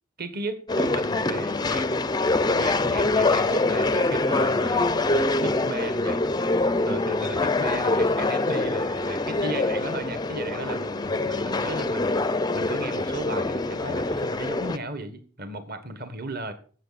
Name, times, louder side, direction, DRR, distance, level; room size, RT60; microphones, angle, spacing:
voice 1, 0.2-1.9 2.5-6.2 6.8-16.5, right 2 dB, 45° right, 9 dB, 1.4 m, -35 dB
sound 1, 0.7-14.8, left 2 dB, 20° left, 0.4 m, -25 dB
16.0 x 7.1 x 4.1 m, 0.41 s
head